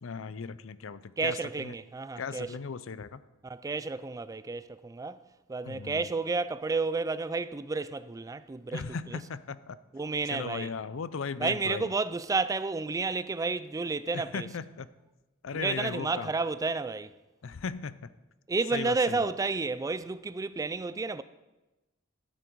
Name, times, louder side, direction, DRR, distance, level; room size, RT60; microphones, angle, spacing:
voice 1, 0.0-1.7 2.2-3.2 5.6-6.1 8.7-9.8 10.3-11.9 14.1-14.9 15.4-16.3 17.4-18.0 18.7-19.3, left 5 dB, 80° left, 0.5 m, -37 dB
voice 2, 1.2-2.6 3.4-5.2 5.5-9.2 9.9-10.7 11.4-14.5 15.5-17.2 18.5-21.2, right 4 dB, 15° right, 0.3 m, -31 dB
12.5 x 8.4 x 4.6 m
head